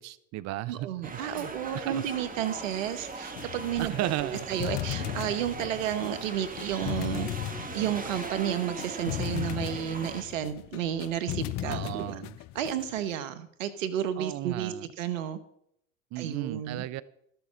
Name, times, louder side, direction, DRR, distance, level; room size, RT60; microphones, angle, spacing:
voice 1, 0.0-2.0 3.8-4.8 11.6-12.3 14.2-14.9 16.1-17.0, right 15 dB, 45° right, 16 dB, 0.6 m, -35 dB
voice 2, 0.7-3.9 4.2-7.3 7.7-12.1 12.5-15.4 16.2-16.8, right 10 dB, 85° right, 12 dB, 1.2 m, -32 dB
sound 1, 1.0-10.2, right 3 dB, 20° right, 1.8 m, -40 dB
sound 2, 3.4-13.1, left 17 dB, 50° left, 0.5 m, -37 dB
13.0 x 7.0 x 6.2 m, 0.73 s
hypercardioid pair, 80°, 38 cm